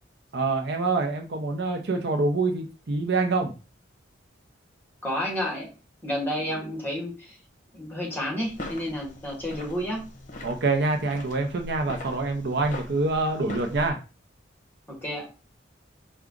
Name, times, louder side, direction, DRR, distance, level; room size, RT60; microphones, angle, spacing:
voice 1, 0.3-3.5 10.4-14.0, right 3 dB, 60° right, 4 dB, 0.7 m, -26 dB
voice 2, 5.0-5.7 6.0-7.4 7.7-10.1 14.9-15.3, equal, 10° left, -2 dB, 1.5 m, -30 dB
sound 1, 8.4-13.9, left 1 dB, 40° left, 0.9 m, -41 dB
4.6 x 2.4 x 3.8 m, 0.31 s
head